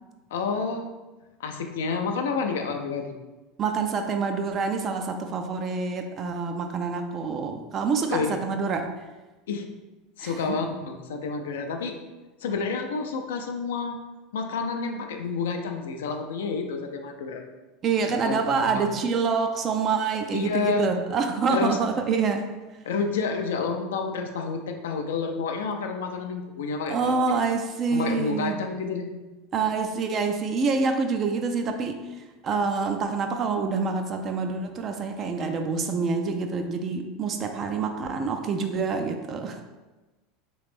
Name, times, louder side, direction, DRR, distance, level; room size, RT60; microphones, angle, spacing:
voice 1, 0.3-0.9 1.4-3.2 8.1-8.4 9.5-9.7 10.2-12.0 12.4-14.0 14.3-17.4 18.1-18.9 20.3-20.9 21.5-21.8 22.8-27.1 27.9-29.1, left 5 dB, 65° left, 4 dB, 0.4 m, -29 dB
voice 2, 3.6-8.9 10.2-10.6 17.8-22.5 26.9-28.6 29.5-32.0 32.4-39.6, right 5 dB, 35° right, 5 dB, 0.3 m, -26 dB
3.1 x 3.0 x 3.4 m, 1.2 s
figure-of-eight pair, 75°, 0 cm